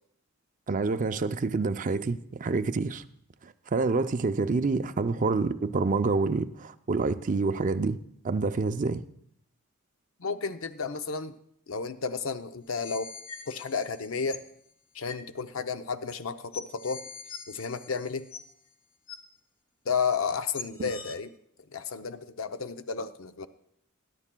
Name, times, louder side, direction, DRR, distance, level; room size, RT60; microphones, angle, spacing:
voice 1, 0.7-3.0 3.7-8.0 8.2-9.0 20.8-20.9, right 3 dB, 40° right, 0.5 m, -27 dB
voice 2, 10.2-11.4 11.7-13.1 13.5-14.4 14.9-17.0 17.5-18.3 19.9-21.3 21.7-23.5, left 5 dB, 70° left, 0.6 m, -32 dB
sound 1, 12.6-14.5 15.1-15.3 16.1-16.2 16.5-18.7 19.1-19.2 20.1-20.2 20.5-21.1, left 6 dB, 85° left, 1.0 m, -43 dB
21.0 x 11.0 x 2.2 m
head